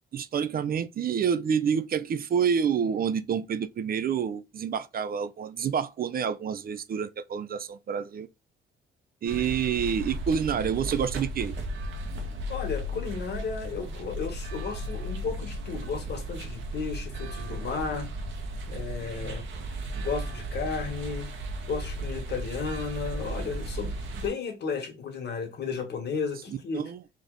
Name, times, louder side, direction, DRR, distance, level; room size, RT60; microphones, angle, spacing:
voice 1, 0.1-8.3 9.2-11.5 26.8-27.0, right 7 dB, 50° right, 0.5 m, -28 dB
sound 1, 9.3-24.3, right 1 dB, 75° right, 1.4 m, -35 dB
voice 2, 12.5-18.1 18.7-19.5 19.9-21.3 21.6-26.8, left 5 dB, 55° left, 1.7 m, -34 dB
4.1 x 3.2 x 3.9 m
cardioid pair, 90°, 20 cm